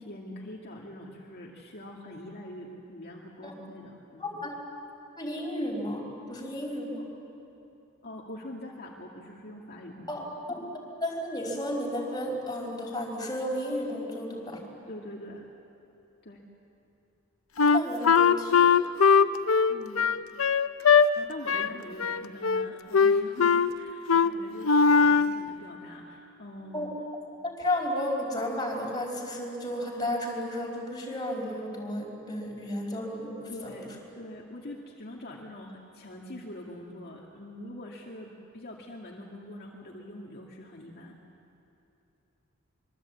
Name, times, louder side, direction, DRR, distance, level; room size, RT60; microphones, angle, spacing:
voice 1, 0.0-4.3 8.0-10.3 14.9-15.5 16.2-16.4 19.7-20.1 21.2-26.9 33.5-41.2, left 1 dB, 50° left, -2 dB, 2.2 m, -44 dB
voice 2, 4.2-4.5 5.2-7.0 10.1-10.6 11.0-14.6 17.7-18.7 26.7-26.9 27.4-33.7, left 1 dB, 20° left, 0 dB, 5.0 m, -33 dB
Wind instrument woodwind instrument, 17.6-21.1 21.5-21.7 22.0-22.7 22.9-23.7 24.1-24.3 24.6-25.4, left 6 dB, 75° left, 0.7 m, -20 dB
25.0 x 23.5 x 8.5 m, 3.0 s
head